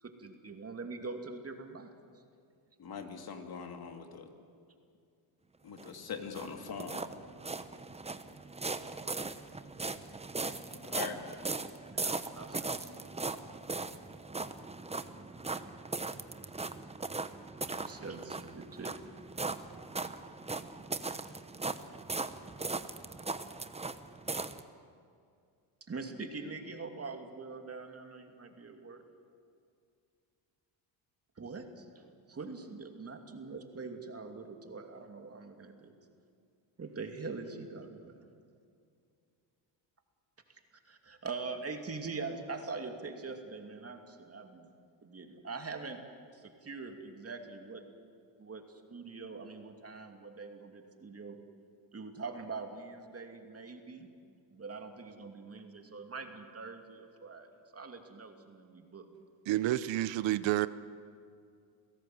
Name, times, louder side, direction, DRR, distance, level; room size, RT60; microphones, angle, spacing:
voice 1, 0.0-1.9 11.9-13.0 17.6-18.9 25.9-29.0 31.4-32.0 32.3-35.9 36.8-38.2 40.5-40.6 40.9-44.7 45.0-46.0 46.3-47.8 48.4-51.4 51.9-54.1 54.5-59.1, right 4 dB, 30° right, 2.7 m, -43 dB
voice 2, 2.8-4.3 5.6-7.0 10.7-11.2, left 6 dB, 50° left, 2.9 m, -42 dB
sound 1, 5.8-24.6, right 3 dB, 15° right, 1.0 m, -39 dB
voice 3, 59.5-60.7, right 15 dB, 70° right, 0.8 m, -29 dB
28.5 x 17.0 x 7.8 m
cardioid pair, 95°, 47 cm